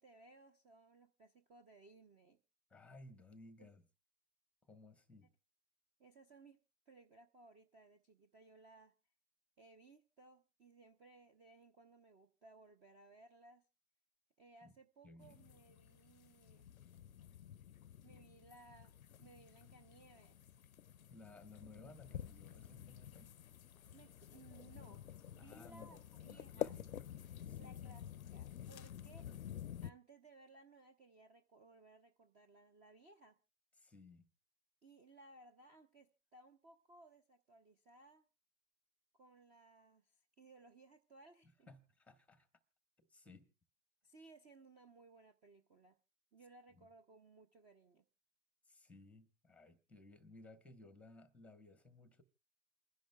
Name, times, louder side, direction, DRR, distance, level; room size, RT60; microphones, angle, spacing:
voice 1, 0.0-2.4 3.6-3.7 6.0-6.6 6.9-8.9 9.6-13.7 14.4-16.7 18.0-20.4 23.9-25.0 25.3-26.7 27.6-29.3 29.8-33.4 34.8-38.3 39.1-41.7 44.0-46.0 46.3-48.0, right 3 dB, 20° right, 0.7 m, -62 dB
voice 2, 2.7-3.8 4.6-5.3 14.6-14.7 15.0-15.5 21.1-23.3 25.4-26.0 26.3-27.1 27.4-27.8 33.8-34.3 41.4-42.5 43.1-43.5 46.7-46.9 48.7-52.2, left 2 dB, 5° left, 1.0 m, -59 dB
sound 1, 15.2-29.9, left 10 dB, 90° left, 0.6 m, -50 dB
28.5 x 10.5 x 2.3 m
hypercardioid pair, 120°, 41 cm